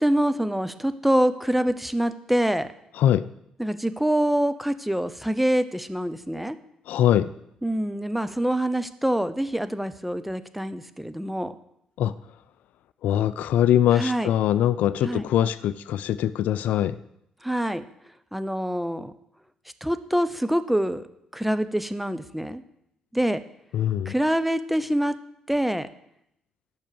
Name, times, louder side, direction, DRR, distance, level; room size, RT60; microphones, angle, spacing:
voice 1, 0.0-2.7 3.6-6.6 7.6-11.5 13.9-14.3 15.0-15.3 17.4-17.8 18.3-19.1 19.8-21.1 21.3-22.6 23.1-23.4 24.1-25.1 25.5-25.9, right 1 dB, 5° right, 12 dB, 0.9 m, -25 dB
voice 2, 6.9-7.3 12.0-12.1 13.0-17.0 23.7-24.1, left 11 dB, 75° left, 16 dB, 0.4 m, -22 dB
10.5 x 6.3 x 6.9 m, 0.79 s
supercardioid pair, 55°, 3 cm